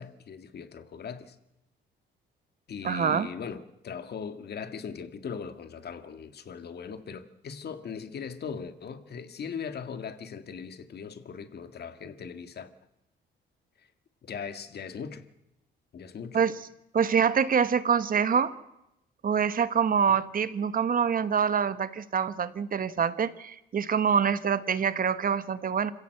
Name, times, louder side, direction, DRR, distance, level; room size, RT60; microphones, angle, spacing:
voice 1, 0.0-1.4 2.7-12.7 14.2-15.3 15.9-16.4 20.1-20.2, left 6 dB, 55° left, 1.9 m, -39 dB
voice 2, 2.8-3.3 16.3-16.6 16.9-18.5 19.2-25.9, right 7 dB, 45° right, 1.2 m, -25 dB
26.0 x 16.0 x 7.8 m
cardioid pair, 90°, 20 cm